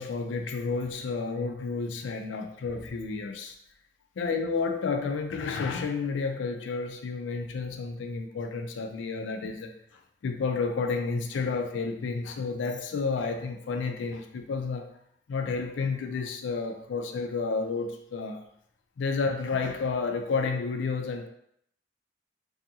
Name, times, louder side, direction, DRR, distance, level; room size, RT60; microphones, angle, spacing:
voice 1, 0.0-3.6 4.2-9.7 10.2-14.9 15.3-18.4 19.0-21.3, left 4 dB, 80° left, 5 dB, 0.4 m, -31 dB
2.7 x 2.4 x 2.7 m, 0.70 s
head